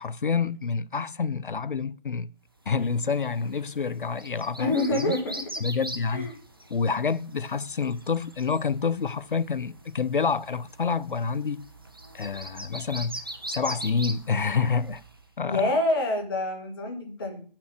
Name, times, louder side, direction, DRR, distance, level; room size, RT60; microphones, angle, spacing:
voice 1, 0.0-2.3 2.7-5.1 5.6-6.3 6.7-11.7 12.1-13.2 13.5-15.0 15.4-15.7, left 5 dB, 60° left, 0.5 m, -28 dB
sound 1, 2.8-15.2, right 1 dB, 25° right, 0.5 m, -42 dB
voice 2, 4.6-5.4 6.1-6.4 15.4-17.4, left 2 dB, 25° left, 1.4 m, -26 dB
7.5 x 5.8 x 4.6 m
figure-of-eight pair, 150°, 29 cm